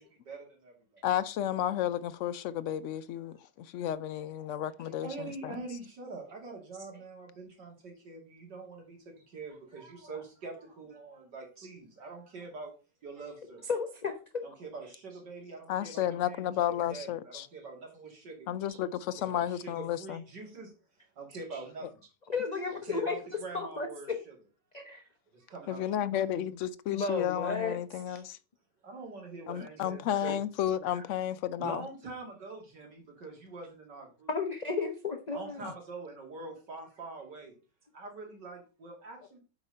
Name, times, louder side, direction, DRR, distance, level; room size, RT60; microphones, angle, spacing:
voice 1, 0.0-1.0 4.5-12.7 13.0-13.7 14.4-18.6 19.2-20.7 21.2-22.0 22.7-24.4 25.3-26.1 28.8-30.4 30.9-31.0 31.6-34.3 35.3-37.5 37.9-39.4, right 3 dB, 80° right, 3.3 m, -44 dB
voice 2, 1.0-5.6 15.7-17.5 18.5-20.2 25.7-28.4 29.5-31.8, left 11 dB, 85° left, 0.6 m, -32 dB
voice 3, 13.7-14.4 18.7-18.8 21.5-21.6 22.3-23.2 23.5-24.2 24.7-25.0 26.9-27.8 28.1-28.2 34.3-35.7, left 4 dB, 35° left, 0.7 m, -33 dB
8.2 x 4.9 x 5.3 m
omnidirectional pair, 1.8 m